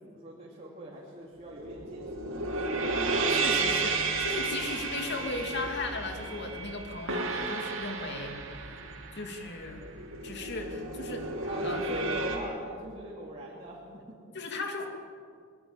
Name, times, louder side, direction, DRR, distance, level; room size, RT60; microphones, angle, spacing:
voice 1, 0.0-2.5 11.5-14.2, right 1 dB, 30° right, -4 dB, 3.0 m, -42 dB
sound 1, 1.4-12.4, right 3 dB, 65° right, 3.1 m, -32 dB
voice 2, 3.3-8.5 9.1-9.9 10.2-11.3 11.6-11.8 13.9-14.0 14.3-14.9, left 2 dB, 55° left, 3 dB, 2.8 m, -37 dB
22.5 x 21.5 x 7.4 m, 2.3 s
head